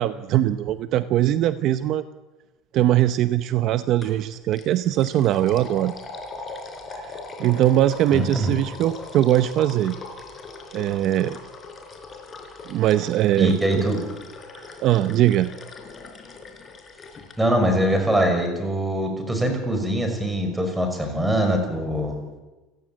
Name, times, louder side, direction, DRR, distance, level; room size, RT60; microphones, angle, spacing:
voice 1, 0.0-2.0 2.7-5.9 6.9-7.1 7.4-10.0 10.7-11.4 12.7-13.8 14.6-15.5, right 13 dB, 45° right, 11 dB, 0.8 m, -21 dB
sound 1, 4.0-4.2 4.5-17.4, left 3 dB, 20° left, 4.5 m, -40 dB
voice 2, 8.1-8.5 13.4-14.0 17.4-22.2, right 1 dB, 5° right, 5 dB, 5.5 m, -23 dB
29.5 x 16.0 x 8.9 m, 1.1 s
cardioid pair, 155°, 0 cm